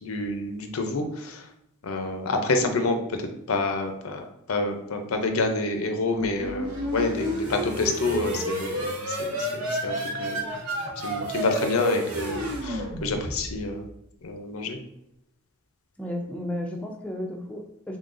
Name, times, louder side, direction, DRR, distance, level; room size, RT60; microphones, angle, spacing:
voice 1, 0.0-1.4 1.8-3.2 3.5-9.9 10.2-10.5 11.0-13.8 14.2-14.8, left 2 dB, 90° left, 5 dB, 0.6 m, -28 dB
sound 1, 6.1-13.7, equal, 90° right, 0.9 m, -30 dB
voice 2, 16.0-18.0, left 1 dB, 5° left, 1 dB, 0.4 m, -33 dB
3.8 x 3.5 x 2.5 m, 0.83 s
head